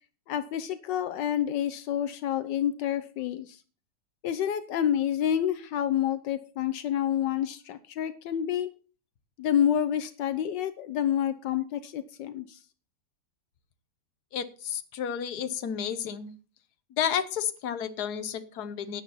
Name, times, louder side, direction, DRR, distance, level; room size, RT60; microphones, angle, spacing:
voice 1, 0.3-3.6 4.2-8.7 9.4-12.6, left 10 dB, 85° left, 12 dB, 1.4 m, -28 dB
voice 2, 14.3-16.3 16.9-19.0, left 8 dB, 65° left, 10 dB, 1.5 m, -31 dB
12.0 x 9.5 x 4.1 m, 0.35 s
omnidirectional pair, 1.9 m